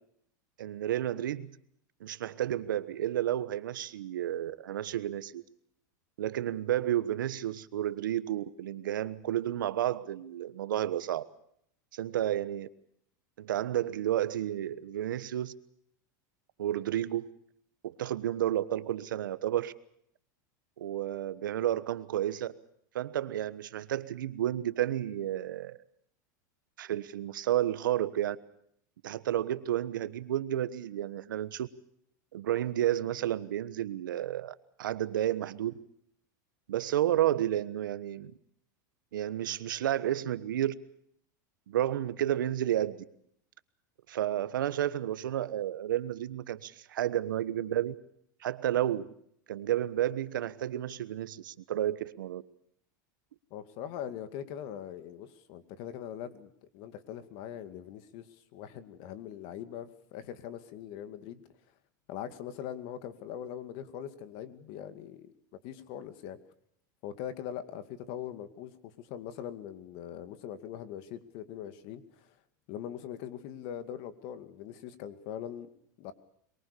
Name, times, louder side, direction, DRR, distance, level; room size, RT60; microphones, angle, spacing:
voice 1, 0.6-1.5 2.0-5.4 6.2-11.2 11.9-12.7 13.4-15.5 16.6-17.3 17.8-19.7 20.8-22.5 22.9-25.8 26.8-28.4 29.0-31.7 32.3-35.7 36.7-38.3 39.1-40.7 41.7-43.0 44.1-47.9 48.4-49.1 49.5-52.4, right 12 dB, 90° right, 14 dB, 1.3 m, -31 dB
voice 2, 53.5-61.4 62.1-65.3 65.6-66.4 67.0-72.3 72.7-75.7 76.0-76.1, left 10 dB, 60° left, 11 dB, 2.3 m, -42 dB
24.0 x 22.5 x 6.9 m, 0.68 s
supercardioid pair, 115°, 10 cm